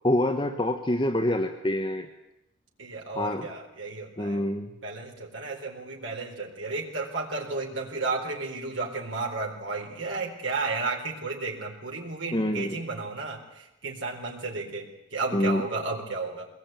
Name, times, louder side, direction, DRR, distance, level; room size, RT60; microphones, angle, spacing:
voice 1, 0.0-2.1 3.2-3.5 4.2-4.7 12.3-12.8 15.3-15.6, left 1 dB, 25° left, 5 dB, 1.2 m, -26 dB
voice 2, 2.8-4.4 4.7-16.5, right 3 dB, 80° right, -1 dB, 4.1 m, -33 dB
23.0 x 19.5 x 9.1 m, 0.86 s
head